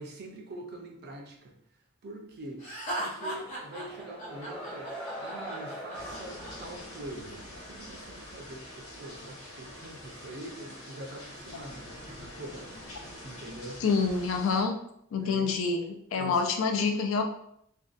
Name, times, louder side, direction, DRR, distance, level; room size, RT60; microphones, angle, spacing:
voice 1, 0.0-2.7 3.0-4.9 5.2-11.9 12.2-12.9 13.2-13.8 15.1-15.5 16.2-16.4, right 1 dB, 50° right, 1 dB, 0.5 m, -44 dB
Laughter, 2.6-6.5, right 1 dB, 35° left, 0.9 m, -37 dB
sound 1, 3.3-7.8, right 1 dB, 5° left, 0.6 m, -42 dB
sound 2, 5.9-14.6, left 1 dB, 90° left, 0.9 m, -45 dB
voice 2, 13.8-14.8 15.1-17.2, left 4 dB, 70° left, 5 dB, 0.3 m, -27 dB
2.6 x 2.2 x 2.3 m, 0.73 s
head